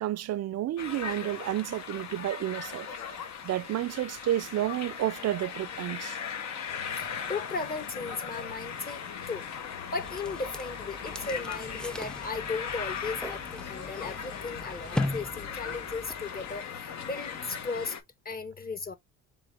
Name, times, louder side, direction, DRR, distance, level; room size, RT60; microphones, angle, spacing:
voice 1, 0.0-2.9 3.4-6.2, right 13 dB, 55° right, 0.5 m, -31 dB
sound 1, 0.8-18.0, left 7 dB, 65° left, 1.1 m, -39 dB
sound 2, 6.7-17.9, left 8 dB, 80° left, 1.2 m, -48 dB
voice 2, 7.0-9.5 9.8-18.0 18.2-18.9, left 4 dB, 30° left, 1.1 m, -36 dB
sound 3, 10.0-16.6, left 1 dB, 5° left, 0.5 m, -38 dB
3.8 x 3.7 x 3.4 m
cardioid pair, 90°, 30 cm